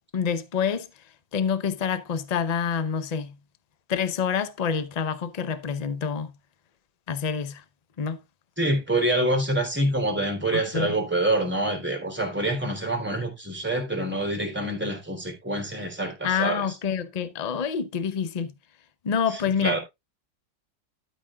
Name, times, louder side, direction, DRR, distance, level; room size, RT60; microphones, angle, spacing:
voice 1, 0.1-0.9 1.3-3.3 3.9-6.3 7.1-7.6 8.0-8.2 10.5-10.9 16.2-18.5 19.0-19.8, left 7 dB, 80° left, 0.3 m, -27 dB
voice 2, 8.6-16.8 19.3-19.8, right 1 dB, 5° right, 2.9 m, -26 dB
12.5 x 5.2 x 3.5 m
omnidirectional pair, 2.0 m